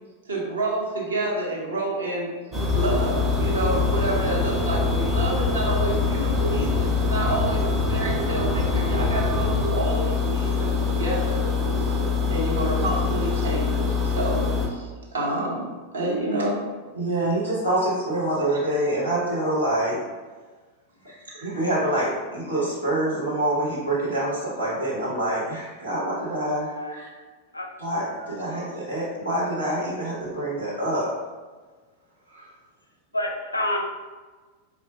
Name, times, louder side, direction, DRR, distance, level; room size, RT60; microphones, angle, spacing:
voice 1, 0.3-2.3 2.7-11.4 11.7-11.9 12.3-15.7 15.9-16.6 17.2-17.3, right 2 dB, 70° right, -5 dB, 0.9 m, -28 dB
sound 1, 2.5-14.7, left 4 dB, 20° right, 0.6 m, -24 dB
voice 2, 16.9-20.0 21.3-27.1 27.8-31.1 32.3-32.5, right 1 dB, 85° right, -9 dB, 1.3 m, -26 dB
voice 3, 33.1-33.8, left 1 dB, 85° left, 1 dB, 0.4 m, -28 dB
4.7 x 2.4 x 2.3 m, 1.3 s
figure-of-eight pair, 90°, 0 cm